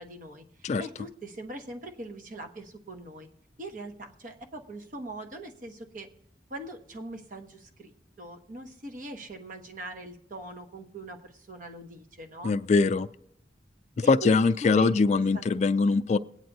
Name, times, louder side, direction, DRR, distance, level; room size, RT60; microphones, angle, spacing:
voice 1, 0.0-3.3 3.6-6.1 6.5-7.9 8.2-12.5 14.0-15.4, right 1 dB, 50° right, 5 dB, 1.0 m, -41 dB
voice 2, 12.4-13.1 14.1-16.2, left 4 dB, 40° left, 11 dB, 0.3 m, -22 dB
21.5 x 8.9 x 2.6 m, 0.74 s
head